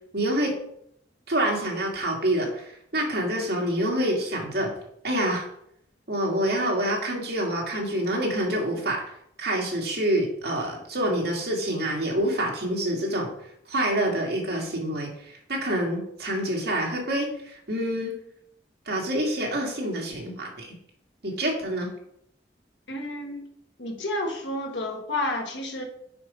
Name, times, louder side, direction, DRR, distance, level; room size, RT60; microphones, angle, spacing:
voice 1, 0.1-0.5 1.3-4.7 5.0-5.5 6.1-9.0 9.4-13.3 13.7-18.1 18.9-20.7 21.2-21.9, right 1 dB, 60° right, -1 dB, 2.0 m, -27 dB
voice 2, 22.9-23.4 23.8-25.8, left 1 dB, 85° left, 3 dB, 1.4 m, -30 dB
5.8 x 5.1 x 5.3 m, 0.73 s
head